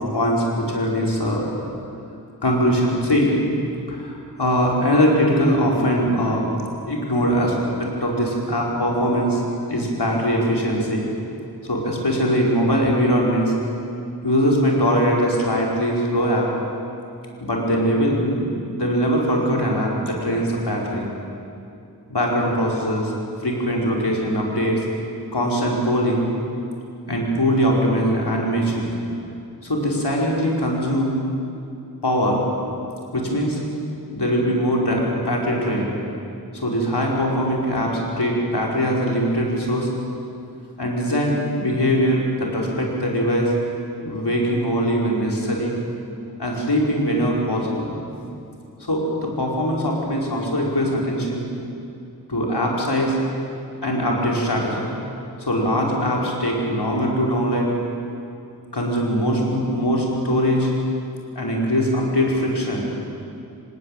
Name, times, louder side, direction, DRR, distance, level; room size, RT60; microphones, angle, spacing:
voice 1, 0.1-1.5 2.4-3.3 3.9-6.5 6.9-7.5 7.8-9.4 9.7-11.1 11.6-13.5 14.2-16.5 17.4-21.0 22.1-23.1 23.4-24.8 25.3-26.3 27.1-28.9 29.6-31.2 32.0-32.4 33.1-33.6 34.1-35.9 36.5-39.9 40.8-43.5 44.0-45.7 46.4-47.9 48.8-51.5 52.3-53.2 53.8-54.9 55.4-57.7 58.7-60.7 61.4-62.9, equal, 90° left, -3 dB, 5.2 m, -21 dB
27.0 x 18.0 x 9.2 m, 2.7 s
wide cardioid pair, 55°, 39 cm